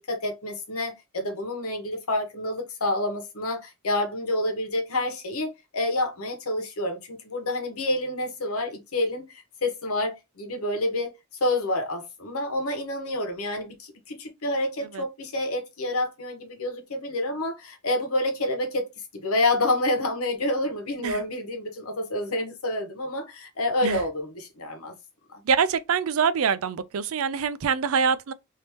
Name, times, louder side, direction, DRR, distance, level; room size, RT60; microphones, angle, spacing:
voice 1, 0.1-11.1 11.4-18.9 19.2-24.9 25.3-25.4, left 1 dB, 80° left, 1.1 m, -28 dB
voice 2, 25.5-28.3, right 6 dB, 70° right, 0.4 m, -24 dB
3.4 x 2.7 x 2.9 m
head